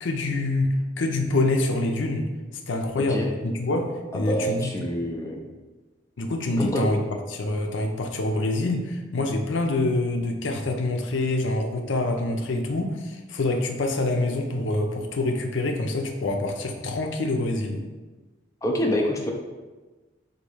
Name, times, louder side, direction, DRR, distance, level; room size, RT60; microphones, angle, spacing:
voice 1, 0.0-2.2 2.7-4.7 6.2-7.0 7.3-17.8, left 2 dB, 70° left, 3 dB, 0.5 m, -26 dB
voice 2, 3.0-3.3 4.1-5.4 6.6-6.8 18.6-19.3, equal, 15° left, -1 dB, 0.4 m, -26 dB
4.0 x 2.7 x 4.8 m, 1.3 s
head